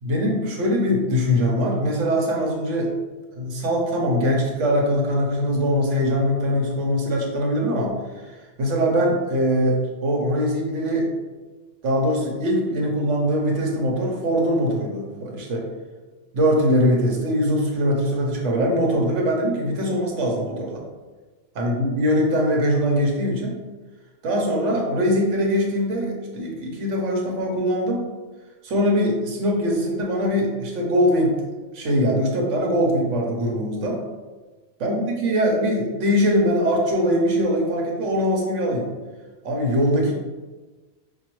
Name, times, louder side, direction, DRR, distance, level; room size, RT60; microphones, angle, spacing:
voice 1, 0.0-2.9 3.4-11.1 11.8-15.7 16.3-20.8 21.5-23.6 24.2-28.0 28.6-31.4 31.7-34.0 34.8-38.9 39.4-40.1, equal, 85° right, 0 dB, 1.1 m, -22 dB
5.4 x 2.3 x 3.0 m, 1.3 s
omnidirectional pair, 1.2 m